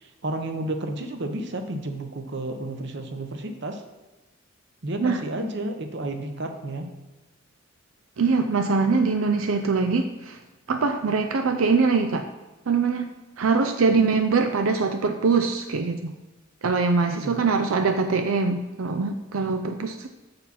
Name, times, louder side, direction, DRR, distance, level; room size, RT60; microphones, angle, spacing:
voice 1, 0.0-3.8 4.8-6.9 17.1-17.5, right 1 dB, 55° right, 6 dB, 0.9 m, -31 dB
voice 2, 8.2-10.4 10.7-12.3 12.7-13.1 13.4-16.1 16.6-20.1, right 4 dB, 90° right, 7 dB, 0.5 m, -23 dB
7.1 x 6.8 x 4.2 m, 1.1 s
head